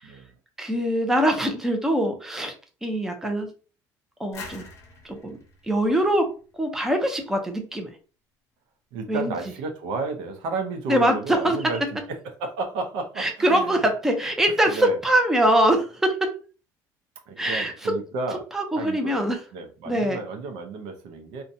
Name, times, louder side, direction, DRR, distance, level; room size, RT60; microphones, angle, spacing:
voice 1, 0.6-2.5 2.8-3.5 4.2-4.7 5.0-5.4 5.6-6.3 6.5-7.9 9.1-9.3 10.9-11.6 13.2-16.3 17.4-17.9 18.5-19.4 19.9-20.2, right 1 dB, 5° right, 4 dB, 0.5 m, -23 dB
sound 1, 4.3-7.0, left 4 dB, 35° left, 0.7 m, -45 dB
voice 2, 8.9-11.8 12.1-13.8 14.7-15.0 17.3-18.4 18.8-21.4, right 3 dB, 80° right, 5 dB, 0.6 m, -32 dB
2.6 x 2.2 x 2.6 m, 0.36 s
cardioid pair, 140°, 7 cm